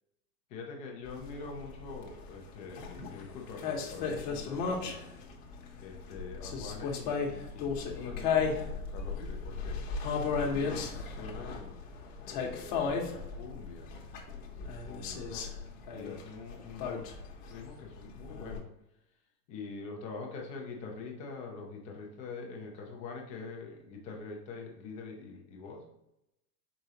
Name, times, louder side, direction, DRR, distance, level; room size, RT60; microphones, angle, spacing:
voice 1, 0.5-5.2 5.8-9.8 10.4-11.8 12.2-13.9 14.8-15.5 15.9-17.1 17.5-18.7 19.5-25.9, left 4 dB, 15° left, 1 dB, 0.3 m, -44 dB
sound 1, 1.1-18.6, left 5 dB, 40° left, 1.0 m, -35 dB
4.9 x 3.7 x 2.7 m, 0.84 s
supercardioid pair, 130°, 49 cm